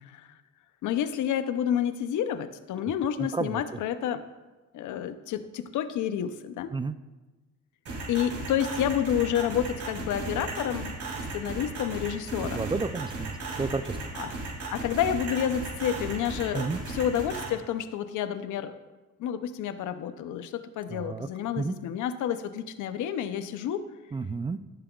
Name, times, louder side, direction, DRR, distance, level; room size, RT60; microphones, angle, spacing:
voice 1, 0.8-4.2 4.7-6.7 8.1-11.0 11.3-12.7 14.1-14.4 14.7-18.8 19.2-23.9, left 9 dB, 80° left, 11 dB, 0.7 m, -29 dB
voice 2, 3.2-3.6 6.7-7.0 12.6-14.1 16.5-16.8 20.9-21.3 21.6-21.8 24.1-24.6, right 4 dB, 15° right, 12 dB, 0.3 m, -31 dB
sound 1, 7.9-17.5, right 3 dB, 55° right, 3.5 m, -35 dB
17.0 x 7.5 x 2.4 m, 1.2 s
cardioid pair, 90°, 30 cm